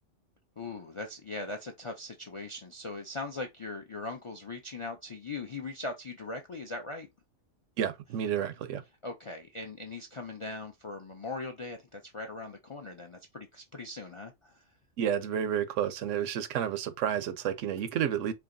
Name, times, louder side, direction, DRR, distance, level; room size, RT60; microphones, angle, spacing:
voice 1, 0.6-7.1 9.0-14.6, left 3 dB, 55° left, 0.3 m, -40 dB
voice 2, 7.8-8.8 15.0-18.3, right 9 dB, 85° right, 0.9 m, -30 dB
4.6 x 2.8 x 2.6 m
omnidirectional pair, 1.3 m